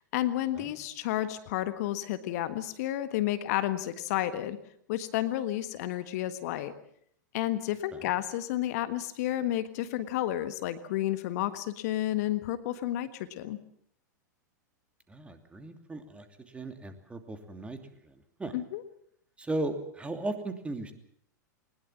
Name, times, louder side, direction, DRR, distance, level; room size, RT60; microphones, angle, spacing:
voice 1, 0.1-4.6 4.9-6.7 7.3-13.6 18.5-18.8, left 13 dB, 55° left, 12 dB, 1.6 m, -31 dB
voice 2, 15.1-17.8 18.0-18.1 18.4-18.5 19.4-20.9, right 2 dB, 10° right, 7 dB, 2.9 m, -36 dB
21.5 x 20.0 x 7.4 m, 0.66 s
figure-of-eight pair, 95°, 10 cm